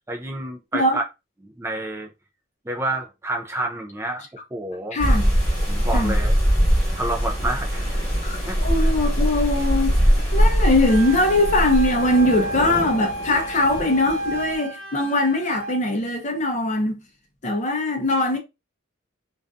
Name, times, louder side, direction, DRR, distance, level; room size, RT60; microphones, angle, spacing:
voice 1, 0.1-1.0 1.6-2.1 2.7-5.0 5.7-6.4 6.9-8.0 8.5-8.9, right 2 dB, 15° right, 0.3 m, -29 dB
voice 2, 4.9-5.3 5.9-6.2 8.2-17.0 17.4-18.4, left 1 dB, 35° left, 0.6 m, -21 dB
sound 1, 5.0-14.6, equal, 5° left, 1.2 m, -22 dB
Wind instrument woodwind instrument, 10.8-15.8, right 2 dB, 65° right, 0.6 m, -32 dB
2.5 x 2.3 x 2.4 m
head